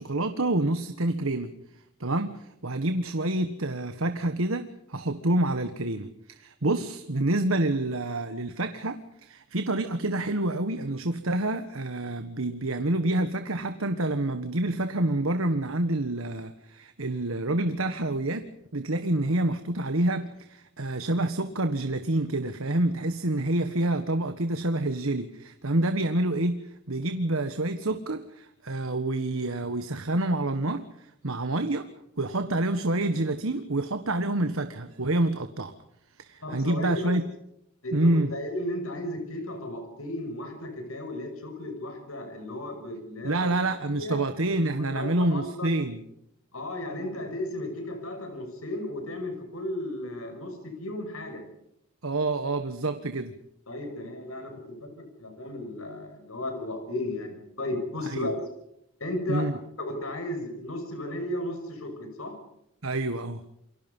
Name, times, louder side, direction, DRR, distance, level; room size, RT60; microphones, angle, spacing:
voice 1, 0.0-1.5 2.0-18.4 18.7-31.9 32.2-35.7 36.2-37.2 37.9-38.3 43.2-46.0 52.0-53.4 58.0-58.3 59.3-59.6 62.8-63.4, right 1 dB, 75° right, 9 dB, 1.5 m, -27 dB
voice 2, 36.4-37.1 37.8-43.5 43.8-44.2 44.8-45.7 46.5-51.4 53.7-58.4 59.0-59.5 59.8-62.3, left 1 dB, 80° left, 6 dB, 6.2 m, -34 dB
28.5 x 24.0 x 5.5 m, 0.77 s
head